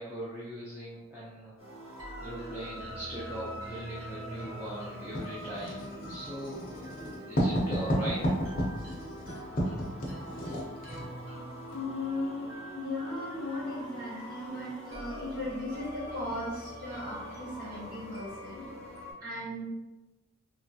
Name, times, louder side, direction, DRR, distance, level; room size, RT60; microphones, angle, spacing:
voice 1, 0.0-1.5 2.2-8.3, right 1 dB, 5° right, -9 dB, 0.4 m, -40 dB
sound 1, 1.6-19.1, equal, 65° right, 1.0 m, -43 dB
Writing, 5.1-11.1, equal, 40° left, 0.6 m, -32 dB
voice 2, 11.7-18.7 19.2-19.6, left 1 dB, 40° right, -8 dB, 1.2 m, -37 dB
2.9 x 2.3 x 2.7 m, 1.0 s
head